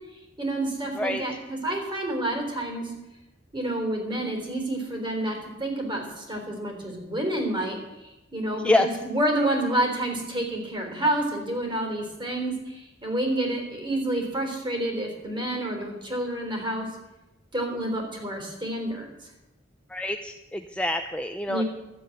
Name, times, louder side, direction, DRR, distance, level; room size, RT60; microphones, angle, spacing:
voice 1, 0.4-2.9 3.5-7.8 8.3-16.9 17.5-19.1 21.5-21.6, right 1 dB, 25° right, 2 dB, 3.8 m, -29 dB
voice 2, 19.9-21.6, left 2 dB, 5° left, 6 dB, 0.5 m, -26 dB
13.0 x 7.8 x 9.8 m, 1.0 s
head